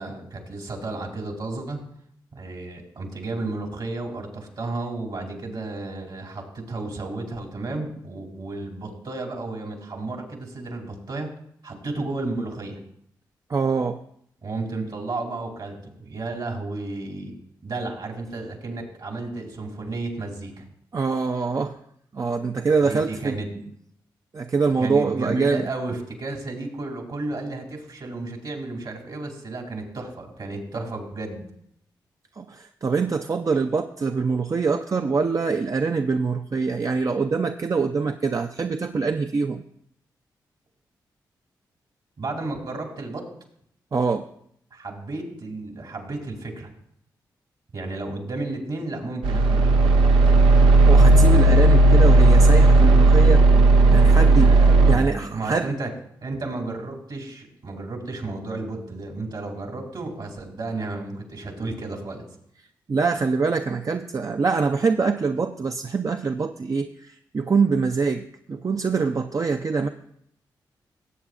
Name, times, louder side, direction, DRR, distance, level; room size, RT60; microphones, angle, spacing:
voice 1, 0.0-1.8 2.3-11.3 11.6-12.8 14.4-17.3 17.6-20.6 22.8-23.5 24.8-31.4 42.2-43.3 44.7-46.7 47.7-50.3 54.4-55.9 56.2-62.2, right 2 dB, 65° right, 2 dB, 2.7 m, -33 dB
voice 2, 13.5-14.0 20.9-21.8 22.1-23.4 24.3-25.7 32.4-39.6 43.9-44.3 50.9-53.4 53.9-54.5 54.9-55.7 62.9-69.9, right 4 dB, 40° right, 6 dB, 0.5 m, -24 dB
sound 1, 49.2-55.0, right 2 dB, 90° right, 0.6 m, -14 dB
17.5 x 8.0 x 2.5 m, 0.71 s
supercardioid pair, 45°, 9 cm